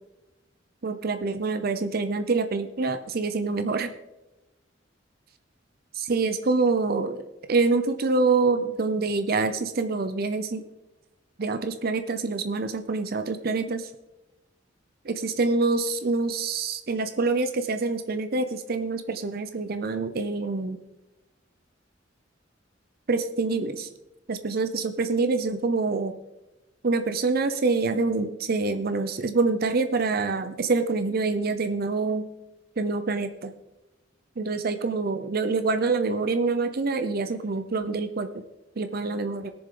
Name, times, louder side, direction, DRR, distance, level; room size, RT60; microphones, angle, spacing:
voice 1, 0.8-3.9 5.9-10.6 11.4-13.9 15.0-20.8 23.1-23.9 24.3-26.1 26.8-32.3 32.8-33.5 34.4-38.3 38.8-39.5, right 3 dB, 55° right, 8 dB, 0.6 m, -26 dB
20.0 x 6.9 x 3.8 m, 0.99 s
head